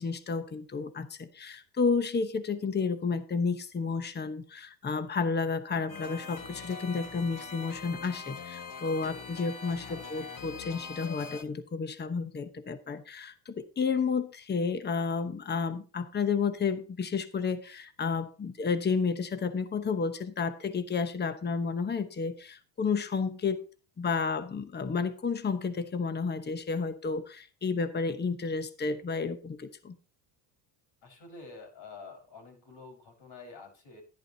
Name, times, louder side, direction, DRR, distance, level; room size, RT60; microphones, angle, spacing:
voice 1, 0.0-23.7 24.0-30.0, left 5 dB, 20° left, 1.0 m, -31 dB
sound 1, 5.9-11.4, left 5 dB, 40° left, 1.7 m, -43 dB
voice 2, 9.8-10.2 31.0-34.0, left 4 dB, 60° left, 4.8 m, -48 dB
10.5 x 10.5 x 2.8 m
cardioid pair, 105°, 49 cm